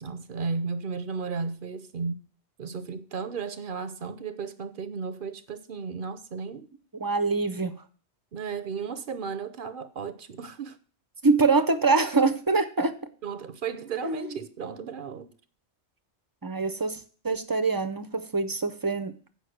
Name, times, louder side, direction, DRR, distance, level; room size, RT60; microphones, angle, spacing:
voice 1, 0.0-2.2 2.6-6.7 8.3-10.8 13.2-15.3, right 5 dB, 55° right, 0.8 m, -34 dB
voice 2, 6.9-7.7 11.2-13.0 14.0-14.3 16.4-17.0 17.2-19.1, right 3 dB, 25° right, 0.5 m, -24 dB
8.1 x 5.3 x 7.7 m
omnidirectional pair, 1.2 m